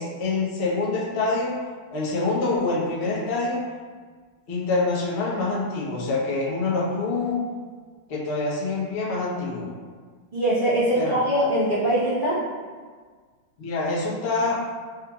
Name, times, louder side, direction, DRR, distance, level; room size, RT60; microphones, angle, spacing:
voice 1, 0.0-1.6 1.9-3.6 4.5-7.4 8.1-9.7 10.9-11.2 13.6-14.6, left 3 dB, 85° left, -6 dB, 0.5 m, -26 dB
voice 2, 10.3-12.4, right 1 dB, 80° right, -13 dB, 0.4 m, -22 dB
4.7 x 3.1 x 2.3 m, 1.6 s
omnidirectional pair, 2.2 m